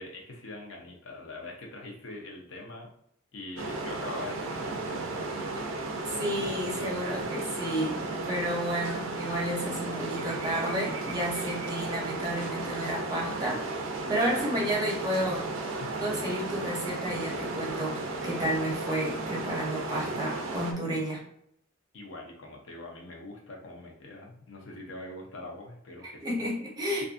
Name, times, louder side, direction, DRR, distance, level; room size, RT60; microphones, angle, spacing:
voice 1, 0.0-2.9 3.3-5.8 6.6-7.1 15.8-15.9 21.9-26.4, left 2 dB, 65° left, 0 dB, 0.6 m, -43 dB
sound 1, 3.6-20.7, right 2 dB, 70° right, 0.4 m, -34 dB
voice 2, 6.2-15.5 16.0-18.0 18.2-21.2 26.2-27.0, equal, 20° right, -3 dB, 0.7 m, -31 dB
2.5 x 2.5 x 2.4 m, 0.72 s
head